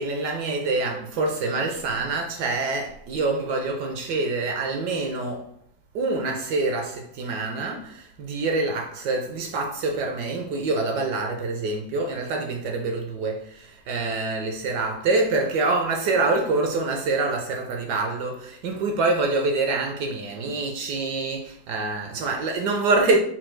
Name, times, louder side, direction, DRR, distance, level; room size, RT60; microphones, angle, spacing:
voice 1, 0.0-5.5 5.9-23.2, right 3 dB, 70° right, 1.1 m, -26 dB
4.4 x 2.3 x 4.4 m
omnidirectional pair, 2.1 m